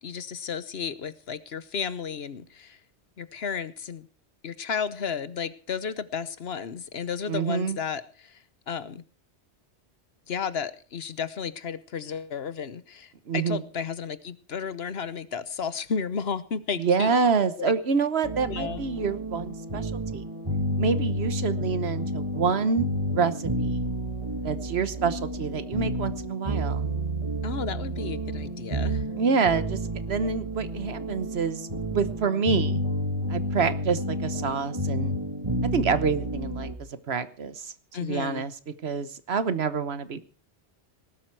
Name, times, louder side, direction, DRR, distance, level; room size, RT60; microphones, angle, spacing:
voice 1, 0.0-2.8 3.2-4.1 4.4-8.4 8.7-9.0 10.3-17.1 17.6-17.7 18.5-18.8 27.4-29.0 37.9-38.5, left 6 dB, 65° left, 15 dB, 1.2 m, -33 dB
voice 2, 7.3-7.8 13.3-13.6 16.7-20.2 20.8-23.8 24.4-26.9 29.2-29.8 30.1-32.8 33.3-35.1 35.7-37.7 38.0-38.5 38.8-40.2, right 5 dB, 65° right, 13 dB, 1.3 m, -27 dB
sound 1, 18.2-36.8, equal, 25° right, 2.3 m, -30 dB
19.0 x 12.0 x 4.7 m, 0.38 s
omnidirectional pair, 1.2 m